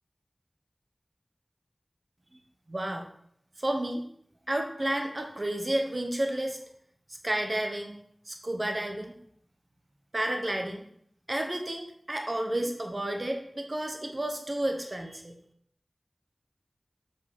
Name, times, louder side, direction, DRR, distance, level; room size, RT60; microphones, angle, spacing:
voice 1, 2.7-3.1 3.6-4.0 4.5-6.6 7.2-8.0 8.3-9.2 10.1-10.9 11.3-15.3, right 1 dB, 45° right, 3 dB, 1.0 m, -31 dB
7.3 x 4.0 x 5.0 m, 0.67 s
wide cardioid pair, 45°, 0 cm